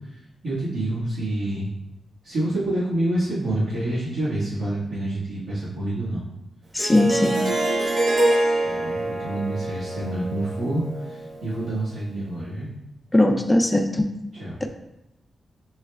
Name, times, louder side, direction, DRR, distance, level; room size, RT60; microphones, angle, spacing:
voice 1, 0.4-1.7 2.2-6.2 8.6-12.7 14.3-14.6, right 1 dB, 85° right, -12 dB, 1.7 m, -27 dB
voice 2, 6.7-7.4 13.1-14.1, left 1 dB, 10° left, 3 dB, 0.4 m, -19 dB
Harp, 6.8-11.7, right 1 dB, 55° right, 0.7 m, -25 dB
6.9 x 3.3 x 2.3 m, 0.87 s
wide cardioid pair, 160°, 0 cm